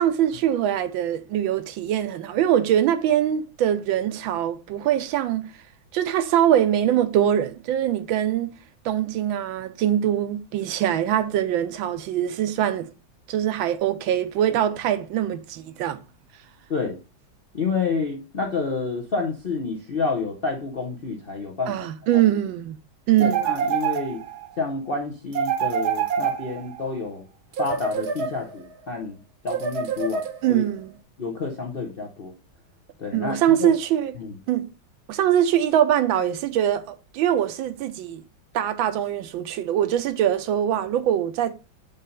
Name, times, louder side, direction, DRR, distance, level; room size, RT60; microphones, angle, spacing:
voice 1, 0.0-5.5 5.9-8.5 8.8-12.9 13.3-16.0 21.7-22.8 23.1-23.5 30.4-30.9 33.1-34.2 34.5-34.7 35.1-38.2 38.5-41.5, right 11 dB, 75° right, 1.4 m, -23 dB
voice 2, 17.5-21.9 22.1-22.2 23.2-24.2 24.6-27.3 27.6-29.2 29.4-30.6 31.2-32.3 33.0-33.7 34.2-34.4, left 4 dB, 55° left, 0.6 m, -29 dB
sound 1, 23.2-24.5 25.3-26.8 27.5-28.7 29.5-30.7, right 7 dB, 60° right, 1.2 m, -26 dB
5.5 x 4.1 x 5.1 m
omnidirectional pair, 2.2 m